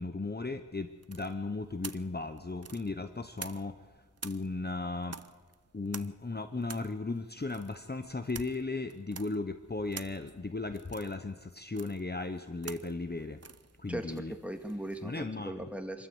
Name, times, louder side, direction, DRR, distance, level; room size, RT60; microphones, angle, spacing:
voice 1, 0.0-3.8 4.2-5.2 5.7-13.4 13.8-14.3 15.0-15.7, left 3 dB, 30° left, 8 dB, 0.9 m, -36 dB
sound 1, 1.0-3.8 4.2-15.1, right 5 dB, 55° right, 0.7 m, -48 dB
voice 2, 13.9-16.1, right 1 dB, 5° right, 5 dB, 2.1 m, -39 dB
25.5 x 13.5 x 7.9 m, 1.4 s
wide cardioid pair, 40°, 31 cm